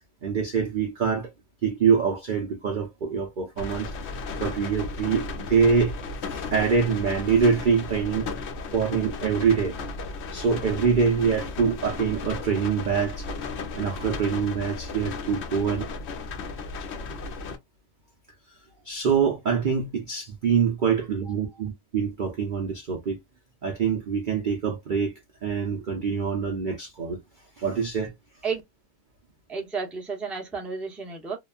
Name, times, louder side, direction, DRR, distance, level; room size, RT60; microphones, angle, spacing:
voice 1, 0.2-1.3 1.6-5.9 6.3-8.3 8.7-9.8 10.3-13.3 13.7-15.8 17.1-17.2 18.8-23.2 23.6-27.2 27.6-28.1, right 6 dB, 65° right, 0.5 m, -25 dB
sound 1, 3.6-17.6, left 3 dB, 60° left, 0.8 m, -35 dB
voice 2, 29.5-31.4, right 5 dB, ahead, 0.4 m, -32 dB
2.9 x 2.2 x 2.3 m
omnidirectional pair, 1.6 m